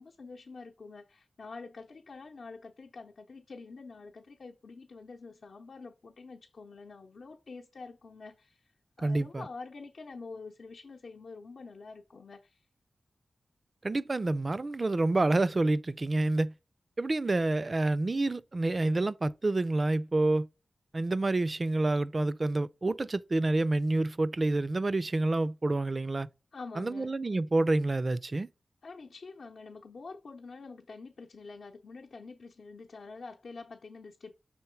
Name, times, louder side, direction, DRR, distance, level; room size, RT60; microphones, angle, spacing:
voice 1, 0.0-8.7 9.0-12.7 26.5-27.1 28.8-34.3, left 4 dB, 70° left, 0.7 m, -47 dB
voice 2, 9.0-9.5 13.8-16.5 17.0-20.5 20.9-26.3 26.8-28.5, right 2 dB, 40° right, 0.4 m, -28 dB
5.7 x 3.7 x 4.4 m
wide cardioid pair, 75°, 0 cm